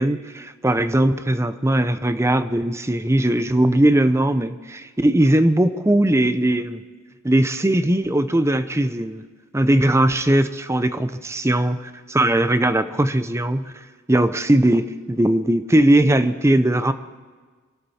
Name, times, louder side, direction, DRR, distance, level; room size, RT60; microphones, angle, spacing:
voice 1, 0.0-6.8 7.2-9.2 9.5-11.8 12.1-13.7 14.1-16.9, right 1 dB, 15° right, 11 dB, 0.6 m, -19 dB
25.5 x 12.5 x 4.3 m, 1.4 s
head